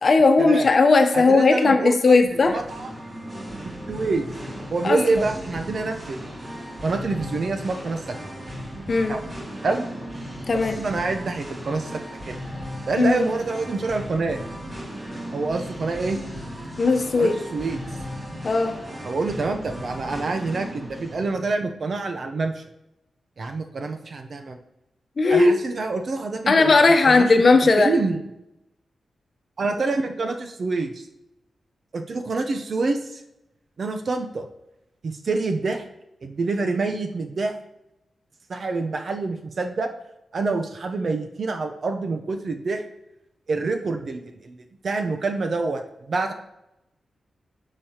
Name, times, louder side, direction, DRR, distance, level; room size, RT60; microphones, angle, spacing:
voice 1, 0.0-2.6 4.8-5.0 8.9-9.2 10.5-10.8 13.0-13.3 16.8-17.4 18.4-18.7 25.2-25.5 26.5-27.9, left 3 dB, 50° left, 6 dB, 0.9 m, -17 dB
voice 2, 1.1-2.2 2.5-2.9 3.6-4.3 4.7-6.3 6.8-8.2 9.1-9.2 9.6-9.9 10.8-12.0 12.3-12.4 12.9-14.4 15.3-16.2 17.2-17.8 19.0-22.7 23.4-24.6 25.3-26.7 27.0-27.4 27.8-28.2 29.6-31.0 31.9-33.2 33.8-34.5 35.0-35.8 36.2-37.5 38.5-39.9 40.3-42.8 43.5-45.8 46.1-46.3, right 3 dB, 60° right, 5 dB, 0.7 m, -26 dB
Singing, 2.2-21.3, equal, 35° right, 2.6 m, -36 dB
9.8 x 5.0 x 2.9 m, 0.89 s
cardioid pair, 60°, 0 cm